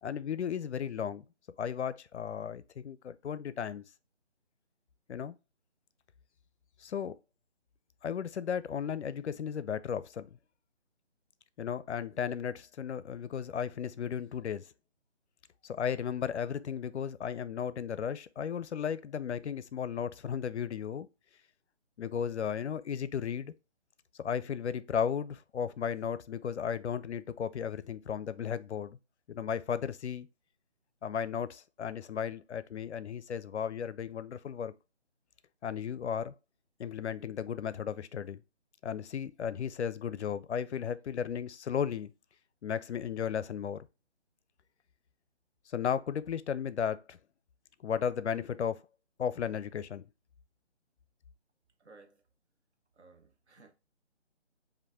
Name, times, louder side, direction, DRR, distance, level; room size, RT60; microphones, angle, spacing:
voice 1, 0.0-1.2 1.6-3.8 5.1-5.3 6.8-7.2 8.0-10.4 11.6-14.7 15.6-21.1 22.0-23.5 24.2-29.0 29.3-30.3 31.0-34.7 35.6-36.3 36.8-38.4 38.8-42.1 42.6-43.9 45.7-47.2 47.8-48.8 49.2-50.0, left 8 dB, 75° left, 0.5 m, -35 dB
voice 2, 51.8-52.2 52.9-53.7, right 3 dB, 70° right, 1.2 m, -57 dB
5.1 x 2.6 x 3.5 m
figure-of-eight pair, 155°, 34 cm